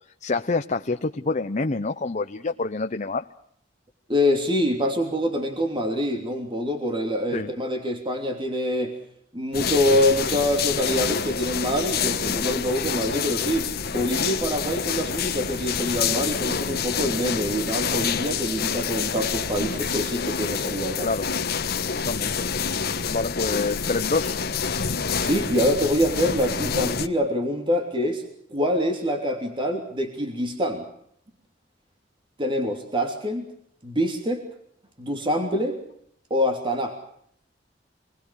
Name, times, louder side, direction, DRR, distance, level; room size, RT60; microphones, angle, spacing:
voice 1, 0.2-3.3 7.3-7.5 21.0-21.3 21.9-22.5 23.1-24.4, left 3 dB, 40° left, 7 dB, 0.8 m, -27 dB
voice 2, 4.1-8.9 9.3-21.1 25.2-28.2 28.5-30.8 32.4-33.5 33.8-34.4 35.0-35.8 36.3-36.9, equal, 25° right, 3 dB, 3.1 m, -25 dB
sound 1, 9.5-27.1, left 6 dB, 55° left, 1.3 m, -27 dB
26.5 x 20.5 x 6.5 m, 0.69 s
head